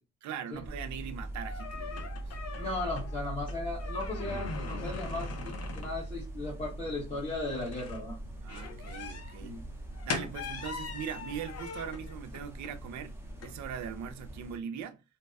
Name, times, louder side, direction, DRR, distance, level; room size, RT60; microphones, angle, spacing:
voice 1, 0.2-2.4 8.4-9.6 10.0-15.0, right 8 dB, 70° right, 0.5 m, -40 dB
sound 1, 0.5-14.4, left 3 dB, 55° left, 0.7 m, -42 dB
sound 2, 0.6-14.6, right 1 dB, 10° right, 0.7 m, -42 dB
voice 2, 2.5-8.2 9.4-9.6, left 2 dB, 20° left, 1.1 m, -36 dB
2.6 x 2.2 x 2.3 m
cardioid pair, 90°, 30 cm